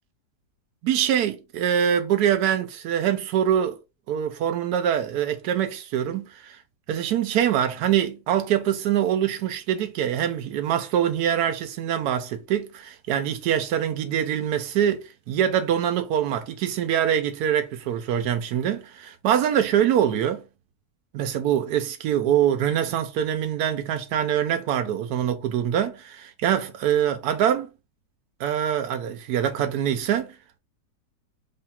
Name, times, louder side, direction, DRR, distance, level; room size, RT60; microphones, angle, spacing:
voice 1, 0.8-3.8 4.1-6.6 6.9-20.4 21.1-27.7 28.4-30.3, right 9 dB, 75° right, 1.2 m, -24 dB
3.2 x 2.3 x 4.1 m
omnidirectional pair, 1.8 m